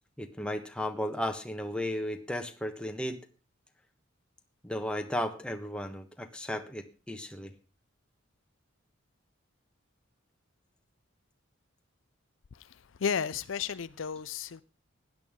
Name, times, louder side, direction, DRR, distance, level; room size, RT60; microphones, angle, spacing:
voice 1, 0.2-3.2 4.6-7.5, left 1 dB, 5° left, 1.2 m, -34 dB
voice 2, 12.5-14.6, left 6 dB, 65° left, 0.5 m, -33 dB
16.5 x 10.5 x 3.7 m
head